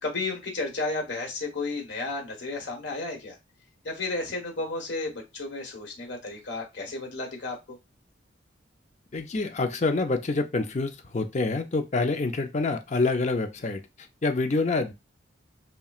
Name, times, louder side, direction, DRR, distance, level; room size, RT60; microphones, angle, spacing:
voice 1, 0.0-3.4 3.8-7.6, left 3 dB, 65° left, 1.3 m, -32 dB
voice 2, 9.1-13.8 14.2-14.9, left 3 dB, 35° left, 0.5 m, -26 dB
5.6 x 2.2 x 2.4 m
head